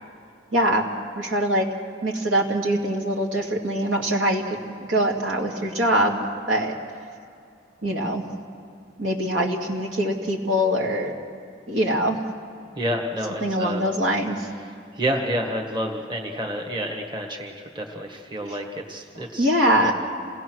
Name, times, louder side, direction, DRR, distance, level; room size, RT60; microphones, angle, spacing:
voice 1, 0.5-0.9 1.2-1.7 2.0-4.6 4.9-6.7 7.8-8.2 9.0-11.1 11.7-12.2 13.4-14.5 18.5-18.6 19.4-19.9, equal, 85° right, 0 dB, 2.5 m, -23 dB
voice 2, 12.7-13.8 14.9-19.5, equal, 25° right, 2 dB, 1.5 m, -29 dB
27.5 x 18.5 x 6.2 m, 2.4 s
head